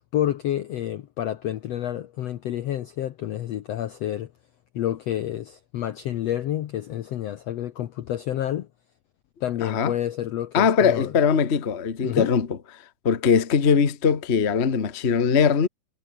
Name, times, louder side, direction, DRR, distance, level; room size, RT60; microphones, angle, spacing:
voice 1, 0.1-4.3 4.7-8.7 9.4-11.1 12.0-12.3, left 12 dB, 90° left, 1.4 m, -29 dB
voice 2, 9.6-9.9 10.5-12.5 13.0-15.7, left 6 dB, 50° left, 0.7 m, -21 dB
omnidirectional pair, 4.3 m